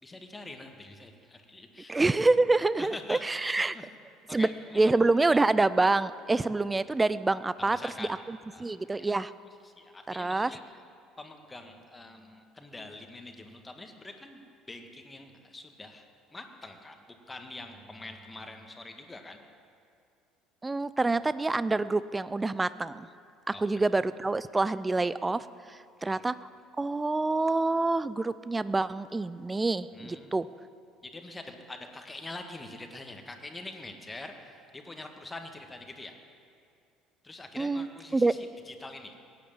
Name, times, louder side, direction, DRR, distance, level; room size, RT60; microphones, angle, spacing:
voice 1, 0.0-1.9 2.8-3.9 4.3-4.9 7.6-8.2 8.5-9.2 9.6-10.6 11.2-16.1 16.3-19.4 23.5-23.7 24.6-24.7 26.0-26.2 29.9-30.4 31.0-36.2 37.2-39.2, left 2 dB, 15° left, 5 dB, 1.8 m, -45 dB
voice 2, 1.9-3.7 4.3-4.5 4.8-9.3 10.1-10.5 20.6-23.1 23.6-26.4 26.8-30.5 37.6-37.9 38.1-38.3, right 3 dB, 15° right, 16 dB, 0.5 m, -27 dB
17.0 x 10.0 x 7.5 m, 2.4 s
figure-of-eight pair, 60°, 0 cm